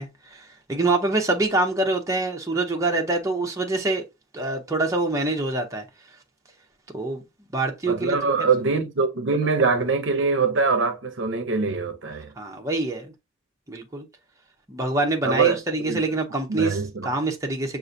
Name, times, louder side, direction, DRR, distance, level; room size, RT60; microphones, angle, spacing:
voice 1, 0.0-4.0 4.3-5.8 6.9-7.2 7.5-8.5 12.4-13.1 13.7-14.0 14.7-17.8, right 2 dB, 15° right, 0.6 m, -25 dB
voice 2, 7.8-12.3 15.2-16.0 16.5-17.1, right 4 dB, 60° right, 0.6 m, -23 dB
6.3 x 2.5 x 2.6 m
head